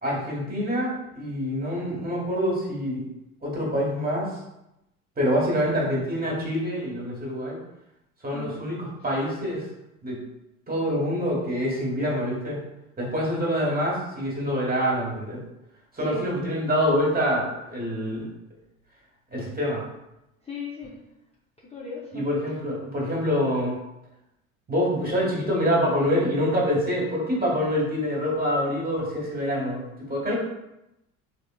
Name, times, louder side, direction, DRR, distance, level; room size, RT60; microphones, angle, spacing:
voice 1, 0.0-3.0 3.4-4.3 5.2-7.6 8.2-8.8 9.0-9.6 10.0-10.2 10.7-12.6 13.0-15.4 15.9-18.3 19.3-19.8 22.1-23.7 24.7-29.8 30.0-30.3, equal, 20° right, -3 dB, 1.5 m, -26 dB
voice 2, 16.0-16.3 20.4-21.0 21.7-22.3 30.3-30.4, left 4 dB, 15° left, -5 dB, 0.7 m, -37 dB
3.5 x 3.5 x 2.3 m, 0.89 s
hypercardioid pair, 70°, 41 cm